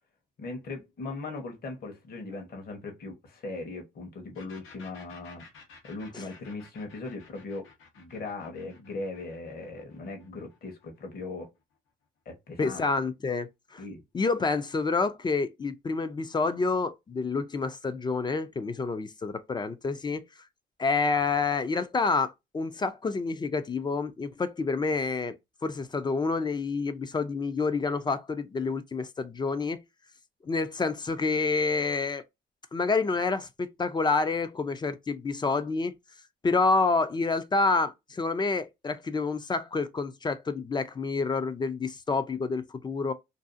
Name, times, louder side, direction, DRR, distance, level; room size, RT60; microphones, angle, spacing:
voice 1, 0.4-5.5 5.8-7.7 8.0-11.5 12.3-12.8 13.8-14.0, left 3 dB, 50° left, 0.9 m, -39 dB
sound 1, 4.3-11.9, left 4 dB, 85° left, 0.9 m, -54 dB
voice 2, 12.6-13.8 14.1-20.2 20.8-25.4 25.6-29.8 30.4-32.2 32.7-35.9 36.4-43.1, left 4 dB, 20° left, 0.3 m, -28 dB
2.6 x 2.3 x 2.4 m
cardioid pair, 90°, 20 cm